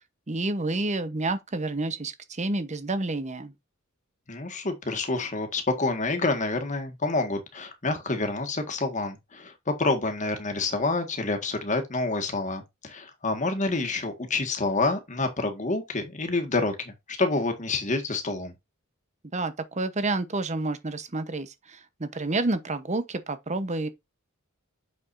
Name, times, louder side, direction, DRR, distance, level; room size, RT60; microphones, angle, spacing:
voice 1, 0.3-3.5 19.3-23.9, right 2 dB, 35° right, 1.0 m, -29 dB
voice 2, 4.3-18.5, left 3 dB, 35° left, 1.7 m, -28 dB
7.0 x 6.9 x 2.6 m
head